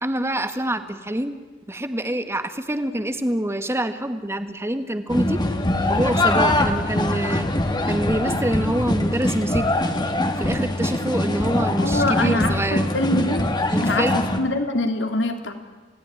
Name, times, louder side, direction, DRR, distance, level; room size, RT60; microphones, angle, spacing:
voice 1, 0.0-1.4 1.7-5.4 5.9-7.5 7.9-9.6 10.4-12.8 13.7-14.2, right 1 dB, 15° right, 8 dB, 1.7 m, -26 dB
sound 1, 5.1-14.4, left 1 dB, 25° left, 2.1 m, -23 dB
voice 2, 11.8-13.4 13.8-15.5, left 2 dB, 80° left, 5 dB, 3.3 m, -24 dB
28.5 x 18.5 x 10.0 m, 1.4 s
head